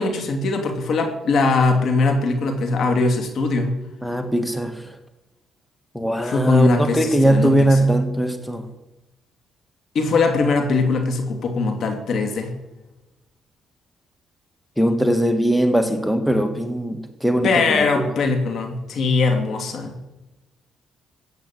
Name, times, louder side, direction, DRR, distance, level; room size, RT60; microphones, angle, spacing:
voice 1, 0.0-3.8 6.2-7.9 9.9-12.5 17.4-19.9, left 3 dB, 65° left, 5 dB, 2.8 m, -21 dB
voice 2, 4.0-4.8 5.9-8.7 14.8-18.1, right 1 dB, ahead, 7 dB, 1.6 m, -20 dB
15.5 x 8.2 x 8.6 m, 1.0 s
cardioid pair, 90°, 0 cm